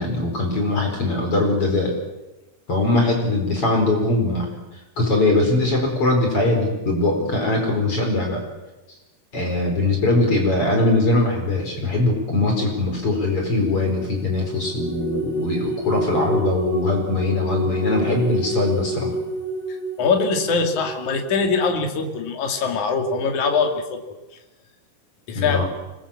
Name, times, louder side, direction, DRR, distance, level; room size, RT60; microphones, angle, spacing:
voice 1, 0.0-1.9 2.7-4.6 5.0-8.4 9.3-19.1 25.3-25.6, left 2 dB, 35° left, 2 dB, 5.4 m, -21 dB
sound 1, 13.4-21.2, equal, 10° left, 4.7 m, -29 dB
voice 2, 19.7-24.0 25.3-25.6, left 4 dB, 55° left, 4 dB, 3.7 m, -22 dB
25.5 x 22.0 x 7.4 m, 1.1 s
omnidirectional pair, 4.3 m